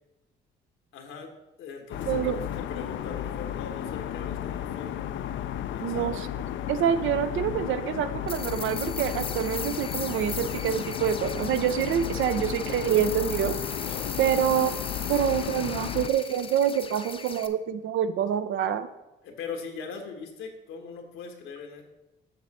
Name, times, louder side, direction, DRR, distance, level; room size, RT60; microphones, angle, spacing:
voice 1, 0.9-1.3 1.6-5.0 5.7-6.2 13.8-14.1 19.2-21.8, left 5 dB, 85° left, 3 dB, 1.4 m, -40 dB
sound 1, 1.9-16.1, left 10 dB, 70° left, 0.4 m, -33 dB
voice 2, 2.0-2.4 5.8-6.3 6.7-13.6 14.2-14.7 15.1-18.9, right 9 dB, 75° right, 11 dB, 0.6 m, -26 dB
sound 2, 8.3-17.5, left 5 dB, 25° left, 0.6 m, -38 dB
7.6 x 6.2 x 4.2 m, 0.98 s
cardioid pair, 90°, 20 cm